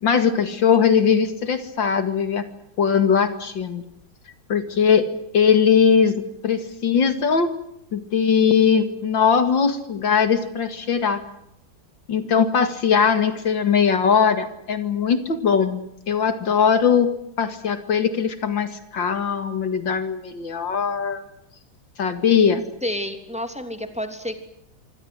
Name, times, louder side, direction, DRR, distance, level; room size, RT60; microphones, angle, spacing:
voice 1, 0.0-2.5 2.8-3.8 4.5-5.1 5.3-7.5 7.9-11.2 12.1-15.8 16.1-21.2 22.0-22.6, left 6 dB, 75° left, 10 dB, 2.8 m, -20 dB
voice 2, 22.8-24.4, equal, 5° right, 7 dB, 3.2 m, -29 dB
26.5 x 25.0 x 7.9 m, 0.78 s
omnidirectional pair, 2.1 m